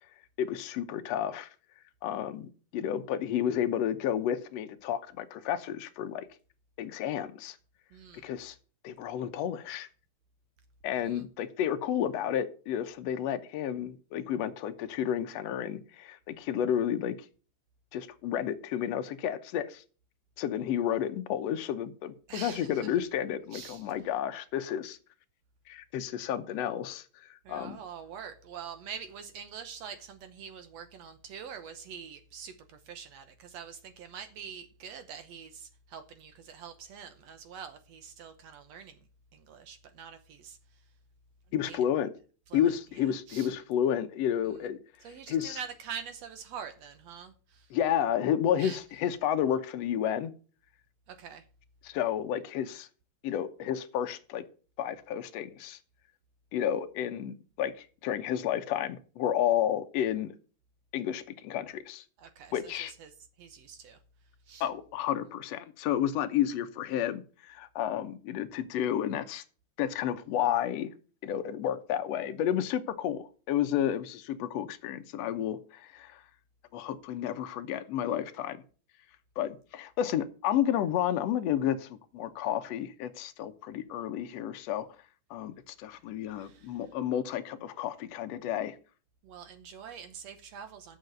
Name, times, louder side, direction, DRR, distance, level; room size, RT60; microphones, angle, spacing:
voice 1, 0.4-1.5 2.0-6.3 6.8-7.6 8.2-8.5 8.8-9.9 10.8-17.2 17.9-19.8 20.4-25.0 25.7-27.8 41.5-42.1 42.5-44.8 45.3-45.6 47.7-50.3 51.8-52.9 53.2-54.4 54.8-55.8 56.5-60.3 60.9-62.0 62.5-62.9 64.6-69.4 69.8-70.9 71.2-76.2 76.7-78.6 79.4-84.9 85.3-88.8, left 10 dB, 70° left, 1.7 m, -31 dB
voice 2, 7.9-8.3 11.0-11.3 22.3-23.0 23.5-23.9 27.4-39.1 39.3-40.9 41.5-41.8 42.5-43.5 44.5-44.6 45.0-47.7 48.6-48.8 51.1-51.5 62.2-64.0 64.4-64.7 86.3-86.9 89.2-91.0, right 7 dB, 70° right, 1.8 m, -45 dB
8.1 x 6.6 x 7.8 m
omnidirectional pair, 3.7 m